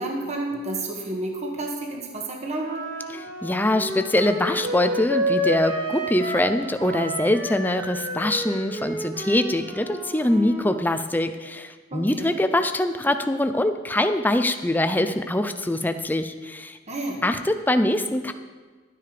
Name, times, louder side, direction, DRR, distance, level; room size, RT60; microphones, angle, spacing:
voice 1, 0.0-2.7 11.9-12.3 16.9-17.2, right 2 dB, 35° right, 0 dB, 1.5 m, -30 dB
Wind instrument woodwind instrument, 2.5-6.5 6.8-10.7, equal, 80° right, 3.7 m, -30 dB
voice 2, 3.1-16.8 17.2-18.3, left 1 dB, 10° left, 9 dB, 0.6 m, -23 dB
12.5 x 9.7 x 5.0 m, 1.4 s
head